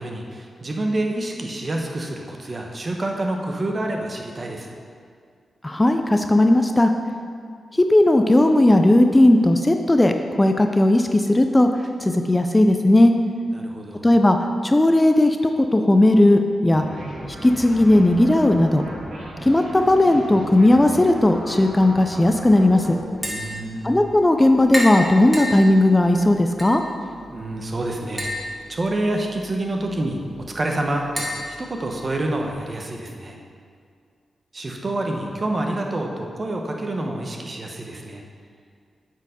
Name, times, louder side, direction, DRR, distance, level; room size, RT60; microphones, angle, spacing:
voice 1, 0.0-4.7 13.5-14.1 23.2-24.0 27.3-30.2 30.5-31.3 31.6-33.4 34.5-38.2, right 1 dB, 40° right, 2 dB, 1.1 m, -27 dB
voice 2, 5.6-6.9 7.7-11.7 12.0-13.1 14.0-14.4 14.6-16.8 17.4-18.8 19.4-23.0 23.8-26.8, left 1 dB, 20° left, 5 dB, 0.5 m, -16 dB
sound 1, 16.7-23.0, equal, 90° right, 2.1 m, -36 dB
Tap, 23.1-32.5, equal, 10° right, 1.9 m, -34 dB
8.0 x 4.6 x 5.1 m, 2.2 s
cardioid pair, 60°, 0 cm